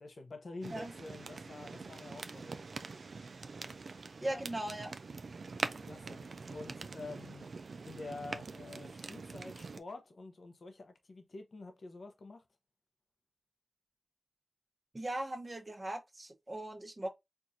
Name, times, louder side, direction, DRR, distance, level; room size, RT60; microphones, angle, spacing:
voice 1, 0.0-2.7 4.2-4.4 5.7-7.5 7.8-12.4, left 3 dB, 75° left, 0.7 m, -48 dB
sound 1, 0.6-9.8, right 4 dB, 80° right, 0.4 m, -44 dB
voice 2, 4.2-4.9 14.9-17.1, right 1 dB, 40° right, 0.9 m, -39 dB
4.5 x 2.5 x 2.6 m
wide cardioid pair, 55°, 0 cm